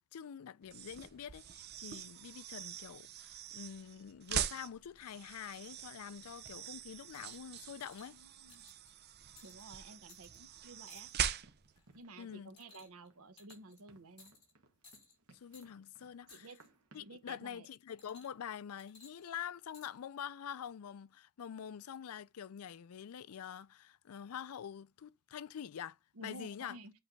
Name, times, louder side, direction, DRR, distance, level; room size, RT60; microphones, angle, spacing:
voice 1, 0.0-8.2 12.2-12.5 15.3-16.5 16.9-26.8, left 8 dB, 75° left, 0.4 m, -46 dB
sound 1, 0.6-11.8, right 9 dB, 45° right, 0.7 m, -43 dB
sound 2, 7.1-7.5 7.8-8.1 8.5-8.9 9.4-9.6 10.1-10.4 10.9-11.3 11.8-12.0 12.6-13.1 13.4-13.8 14.2-14.5 14.8-15.2 15.5-15.7 16.3-16.7 18.0-18.5 18.8-19.9 20.7-20.8, left 4 dB, 25° left, 4.1 m, -60 dB
voice 2, 8.1-8.7 9.4-11.1 11.9-14.3 16.3-16.6 17.0-17.7 26.1-26.9, right 2 dB, 70° right, 0.9 m, -53 dB
Run, 11.4-17.2, right 2 dB, 90° right, 1.4 m, -66 dB
8.5 x 3.3 x 4.0 m
head